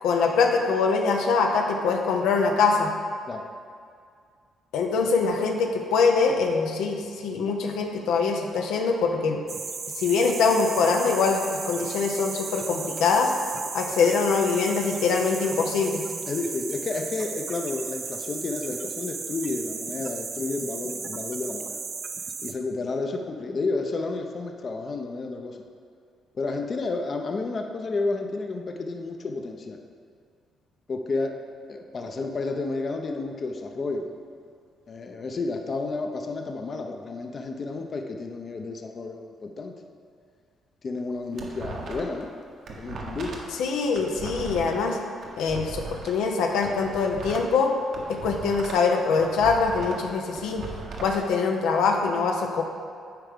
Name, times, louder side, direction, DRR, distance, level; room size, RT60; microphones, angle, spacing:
voice 1, 0.0-2.9 4.7-9.4 10.0-13.3 13.7-16.0 43.6-45.0 45.4-47.7 48.2-50.6 51.0-52.6, left 4 dB, 85° left, 2 dB, 0.6 m, -23 dB
sound 1, 9.5-22.5, right 5 dB, 45° right, 0.4 m, -35 dB
voice 2, 16.3-21.8 22.4-25.6 26.3-29.8 30.9-31.4 31.7-34.1 34.9-39.7 40.8-42.3 42.8-43.4, left 3 dB, 45° left, 3 dB, 0.6 m, -31 dB
sound 2, 41.0-42.2 42.5-46.1 46.5-48.9 49.2-51.2, right 3 dB, 65° right, 1.0 m, -38 dB
8.8 x 4.8 x 3.6 m, 2.2 s
cardioid pair, 90°, 0 cm